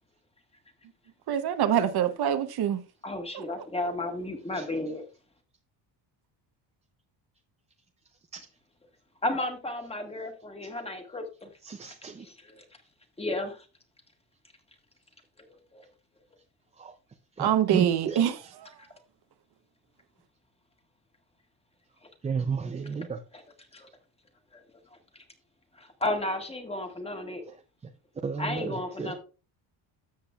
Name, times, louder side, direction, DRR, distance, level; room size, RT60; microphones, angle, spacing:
voice 1, 1.3-2.8 3.3-3.4 17.4-18.7, right 10 dB, 55° right, 0.9 m, -25 dB
voice 2, 3.0-5.0 9.2-11.5 12.5-12.6 13.2-13.6 15.7-15.8 23.7-23.9 25.8-27.4 28.4-29.2, left 2 dB, 10° left, 1.6 m, -33 dB
voice 3, 11.6-12.2 17.4-18.2 22.2-23.2 28.2-29.1, right 5 dB, 15° right, 0.4 m, -32 dB
13.0 x 7.5 x 2.4 m
cardioid pair, 155°, 47 cm